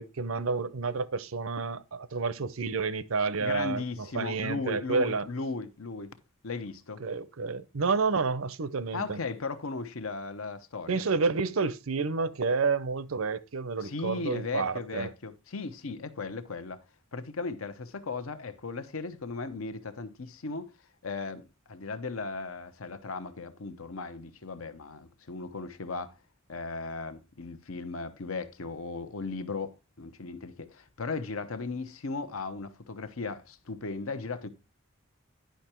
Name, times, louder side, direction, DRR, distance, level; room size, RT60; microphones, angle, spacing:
voice 1, 0.0-5.3 7.0-9.2 10.9-15.1, right 4 dB, 85° right, 0.7 m, -30 dB
voice 2, 3.4-6.1 6.4-7.0 8.9-11.0 13.8-16.8 17.1-20.7 21.0-26.2 26.5-34.5, left 3 dB, 85° left, 0.9 m, -37 dB
10.5 x 5.7 x 4.4 m
head